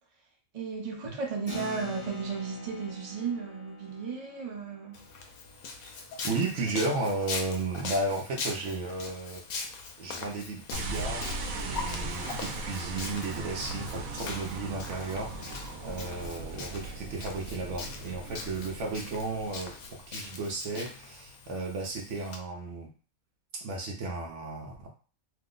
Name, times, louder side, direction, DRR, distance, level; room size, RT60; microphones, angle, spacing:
voice 1, 0.5-5.0, right 5 dB, 35° right, -2 dB, 0.7 m, -34 dB
Keyboard (musical), 1.5-7.5, left 2 dB, 30° left, 0.9 m, -46 dB
Walk footsteps, 4.9-22.4, left 4 dB, 85° left, 1.0 m, -41 dB
voice 2, 6.2-9.4 10.0-22.9 23.6-24.9, right 3 dB, 65° right, 1 dB, 0.9 m, -34 dB
sound 1, 10.7-20.1, right 2 dB, 85° right, 1.0 m, -38 dB
2.8 x 2.0 x 3.7 m, 0.38 s
omnidirectional pair, 1.4 m